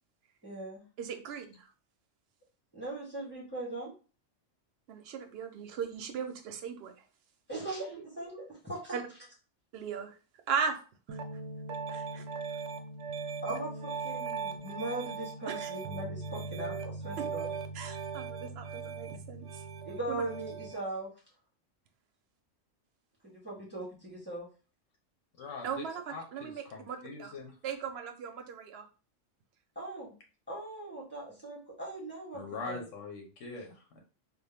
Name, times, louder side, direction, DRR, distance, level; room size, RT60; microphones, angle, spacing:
voice 1, 0.4-0.8 2.7-3.9 7.5-9.0 13.4-17.5 19.8-21.1 23.2-24.5 29.7-30.1 30.5-32.8, right 2 dB, 10° left, -6 dB, 1.6 m, -39 dB
voice 2, 1.0-1.7 4.9-6.9 8.9-9.0 9.7-10.1 10.5-10.8 11.1-11.2 11.9-12.3 15.6-15.7 17.7-19.6 25.6-27.3 27.6-28.9, right 6 dB, 65° right, 6 dB, 0.8 m, -37 dB
Piano, 11.1-20.8, right 5 dB, 85° right, 0.9 m, -39 dB
voice 3, 25.4-27.5 32.3-34.0, left 4 dB, 90° left, 1 dB, 1.2 m, -43 dB
3.4 x 2.4 x 3.4 m, 0.36 s
omnidirectional pair, 1.3 m